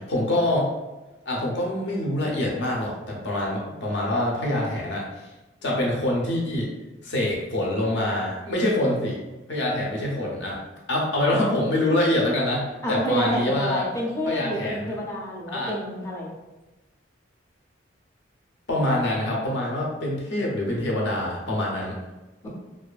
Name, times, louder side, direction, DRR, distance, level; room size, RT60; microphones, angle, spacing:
voice 1, 0.1-0.7 1.3-5.3 5.6-6.7 7.0-9.2 9.5-10.6 10.9-13.9 14.3-15.0 15.5-15.7 18.7-21.9, left 1 dB, 65° left, -3 dB, 0.6 m, -25 dB
voice 2, 12.8-16.3, equal, 15° left, -4 dB, 0.4 m, -28 dB
2.5 x 2.3 x 2.3 m, 1.1 s
head